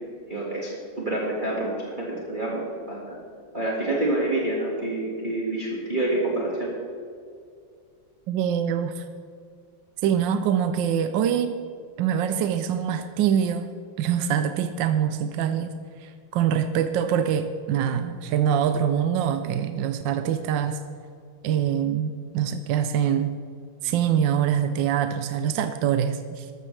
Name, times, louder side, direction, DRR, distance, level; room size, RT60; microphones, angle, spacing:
voice 1, 0.3-0.7 1.0-3.2 3.5-6.7, right 2 dB, 25° right, -5 dB, 1.9 m, -27 dB
voice 2, 8.3-9.0 10.0-11.6 12.0-13.7 14.0-20.8 21.4-23.4 23.8-26.5, right 8 dB, 75° right, 9 dB, 1.2 m, -24 dB
13.5 x 13.5 x 3.3 m, 2.2 s
omnidirectional pair, 2.2 m